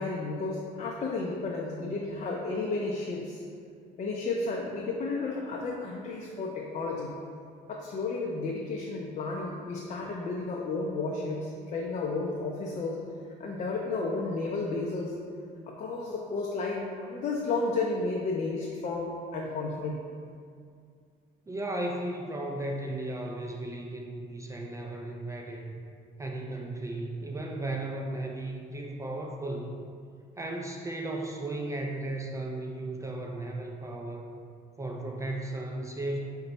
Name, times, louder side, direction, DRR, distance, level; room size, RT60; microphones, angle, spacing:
voice 1, 0.0-3.4 4.0-7.1 7.7-13.0 13.4-15.1 15.7-20.0, left 3 dB, 45° left, -2 dB, 0.5 m, -32 dB
voice 2, 21.5-25.7 26.2-29.8 30.4-34.3 34.8-36.2, right 2 dB, 20° right, 1 dB, 0.4 m, -35 dB
5.1 x 2.2 x 3.9 m, 2.2 s
cardioid pair, 110°, 17 cm